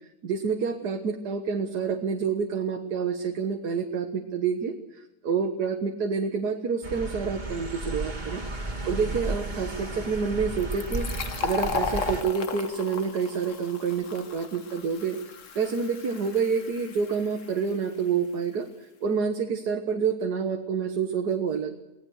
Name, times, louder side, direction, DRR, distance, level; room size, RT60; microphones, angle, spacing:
voice 1, 0.2-8.4 8.9-11.1 11.4-15.2 15.6-21.7, right 6 dB, 85° right, 5 dB, 1.9 m, -28 dB
sound 1, 6.8-12.2, right 2 dB, 30° right, 2.2 m, -33 dB
Fill (with liquid), 10.6-18.0, left 6 dB, 55° left, 1.5 m, -36 dB
25.0 x 18.0 x 6.4 m, 1.0 s
omnidirectional pair, 1.7 m